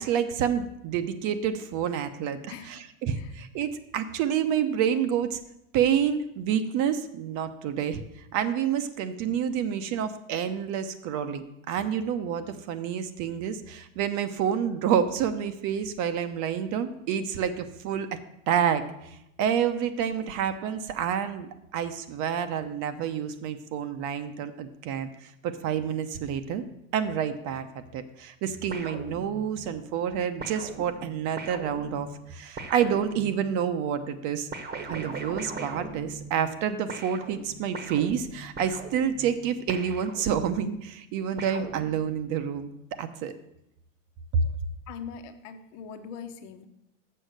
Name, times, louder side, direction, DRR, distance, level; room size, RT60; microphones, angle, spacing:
voice 1, 0.0-5.4 5.7-8.0 8.3-18.2 18.5-26.6 26.9-34.5 34.9-42.7 43.0-43.3, right 8 dB, 45° right, 10 dB, 0.8 m, -28 dB
voice 2, 2.5-2.8 3.2-3.3 44.9-46.7, left 7 dB, 65° left, 8 dB, 1.1 m, -41 dB
sound 1, 28.7-29.7 30.4-33.6 34.5-36.6 36.9-40.7 41.4-42.4, right 4 dB, 25° right, 1.1 m, -40 dB
7.0 x 6.6 x 6.5 m, 0.83 s
supercardioid pair, 115°, 40 cm